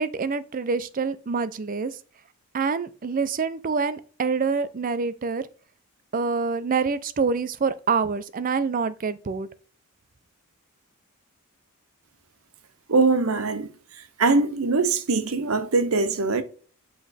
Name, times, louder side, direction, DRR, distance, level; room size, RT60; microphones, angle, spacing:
voice 1, 0.0-1.9 2.5-5.5 6.1-9.5, right 5 dB, 40° right, 0.5 m, -26 dB
voice 2, 12.9-13.7 14.2-16.4, right 3 dB, 70° right, 0.8 m, -22 dB
8.0 x 3.0 x 4.1 m
head